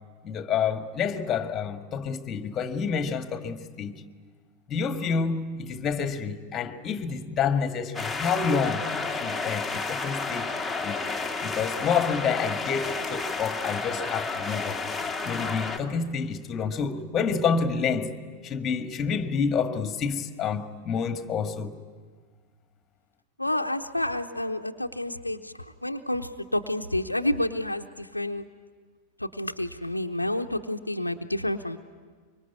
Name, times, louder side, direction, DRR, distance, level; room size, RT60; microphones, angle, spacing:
voice 1, 0.2-4.0 4.7-8.8 9.1-10.5 10.8-11.1 11.4-14.8 15.2-18.1 18.4-21.7, left 6 dB, 25° left, 1.9 m, -28 dB
sound 1, 7.9-15.8, left 4 dB, 5° left, 2.0 m, -31 dB
voice 2, 23.4-28.5 29.2-31.8, left 1 dB, 85° left, 0.9 m, -29 dB
25.0 x 24.0 x 9.7 m
figure-of-eight pair, 90°, 0 cm